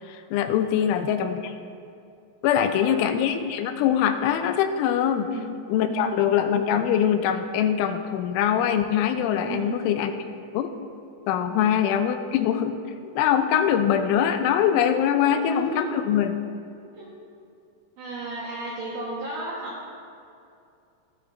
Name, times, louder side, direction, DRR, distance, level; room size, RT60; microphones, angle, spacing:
voice 1, 0.1-1.5 2.4-5.3 5.7-10.1 10.5-10.7 11.3-16.3, left 9 dB, 90° left, 8 dB, 3.1 m, -23 dB
voice 2, 0.8-1.1 2.6-3.1 5.2-5.5 5.8-6.2 9.4-9.8 11.5-11.8 15.3-15.9 16.9-17.1 18.0-19.9, right 2 dB, 65° right, -5 dB, 2.2 m, -35 dB
23.5 x 8.3 x 2.6 m, 2.5 s
omnidirectional pair, 5.4 m